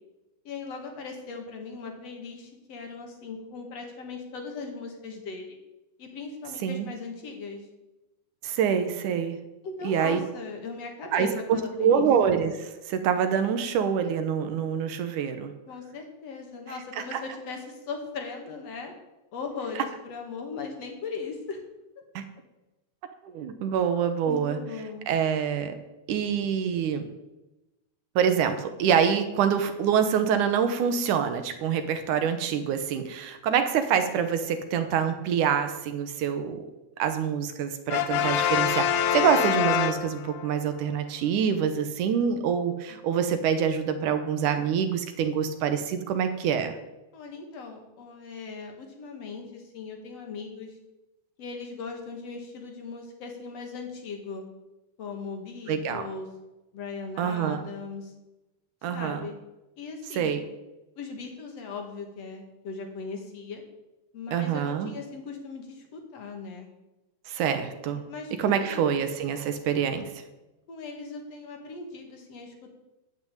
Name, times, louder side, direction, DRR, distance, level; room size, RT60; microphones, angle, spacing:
voice 1, 0.4-5.6 6.0-7.6 9.6-12.1 15.7-18.9 19.3-21.6 24.3-25.1 47.1-50.7 51.4-54.4 55.0-56.3 56.7-58.1 58.9-59.3 59.8-60.3 61.0-63.6 64.1-66.7 68.1-69.0 70.7-72.7, left 4 dB, 45° left, 3 dB, 2.7 m, -38 dB
voice 2, 8.4-9.4 9.8-10.2 11.1-15.5 17.0-17.2 22.2-22.3 23.3-24.6 25.1-25.7 26.1-27.1 28.2-36.7 37.0-46.7 55.7-56.0 57.2-57.6 58.8-59.2 60.1-60.4 64.3-64.9 67.3-68.0 68.4-70.1, right 7 dB, 65° right, 8 dB, 2.2 m, -26 dB
Brass instrument, 37.9-40.6, left 9 dB, 80° left, 2.7 m, -25 dB
14.5 x 6.0 x 9.1 m, 1.0 s
omnidirectional pair, 4.5 m